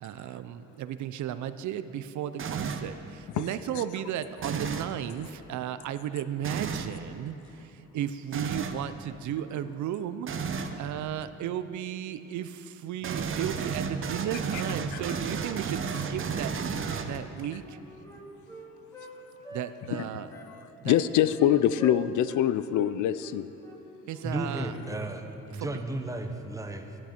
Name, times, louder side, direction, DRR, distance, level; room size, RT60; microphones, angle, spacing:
voice 1, 0.0-16.5 17.0-17.8 19.5-20.3 20.8-21.0 24.1-24.8 25.5-25.8, right 10 dB, 70° right, 12 dB, 0.6 m, -35 dB
sound 1, 2.4-2.9 4.4-4.9 6.4-6.9 8.3-8.8 10.3-10.8 13.0-17.4, right 6 dB, 45° right, 0.8 m, -32 dB
Wind instrument woodwind instrument, 17.2-19.1 19.4-20.5 20.9-21.5 21.8-22.4 22.7-22.9 23.2-23.8 24.1-24.3, right 1 dB, 10° left, 2.1 m, -45 dB
voice 2, 20.8-23.5, left 11 dB, 75° left, 15 dB, 0.5 m, -24 dB
voice 3, 24.2-27.0, right 1 dB, 10° right, 5 dB, 1.0 m, -34 dB
14.5 x 10.5 x 4.4 m, 2.9 s
cardioid pair, 90°, 30 cm